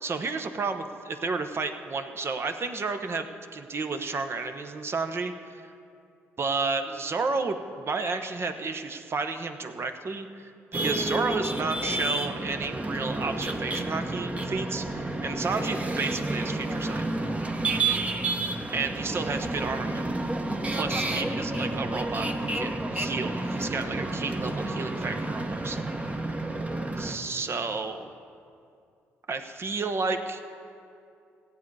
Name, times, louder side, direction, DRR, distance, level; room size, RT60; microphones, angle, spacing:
voice 1, 0.0-3.3 3.5-5.7 6.4-17.1 18.7-20.0 20.7-25.8 27.0-28.1 29.3-30.4, right 4 dB, 45° right, 7 dB, 1.0 m, -32 dB
sound 1, 10.7-27.2, right 2 dB, 25° right, 1.1 m, -30 dB
16.0 x 8.6 x 4.8 m, 2.5 s
supercardioid pair, 55°, 6 cm